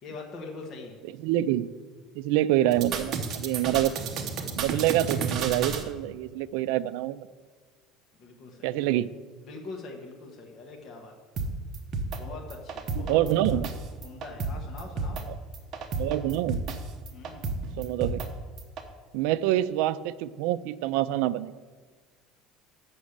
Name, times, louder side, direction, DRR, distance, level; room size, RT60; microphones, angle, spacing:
voice 1, 0.0-1.0 8.2-8.7 9.4-11.1 12.2-13.6 14.0-15.2 17.1-17.6, left 3 dB, 35° left, 0 dB, 1.2 m, -43 dB
voice 2, 1.2-1.7 2.2-3.9 4.6-7.3 8.6-9.1 13.1-13.7 16.0-16.6 17.8-18.3 19.1-21.5, right 14 dB, 75° right, 15 dB, 0.3 m, -26 dB
sound 1, 2.7-5.8 11.4-11.5 11.7-12.2 12.5-13.7 14.0-14.5 14.8-15.2 15.5-16.8 17.1-18.3 18.6-18.8, right 4 dB, 40° right, 0.8 m, -31 dB
7.2 x 6.2 x 6.5 m, 1.5 s
cardioid pair, 160°, 0 cm